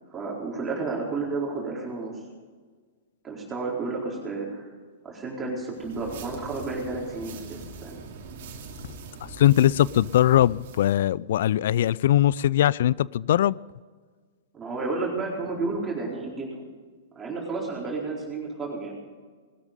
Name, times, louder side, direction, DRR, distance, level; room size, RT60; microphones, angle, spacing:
voice 1, 0.1-2.1 3.2-4.7 5.0-8.0 14.5-16.5 17.2-18.9, right 3 dB, 20° right, -3 dB, 4.3 m, -31 dB
sound 1, 5.7-11.0, right 4 dB, 55° right, 2.6 m, -42 dB
voice 2, 8.9-13.6, left 12 dB, 60° left, 23 dB, 0.4 m, -21 dB
20.0 x 13.0 x 5.2 m, 1.5 s
figure-of-eight pair, 110°, 0 cm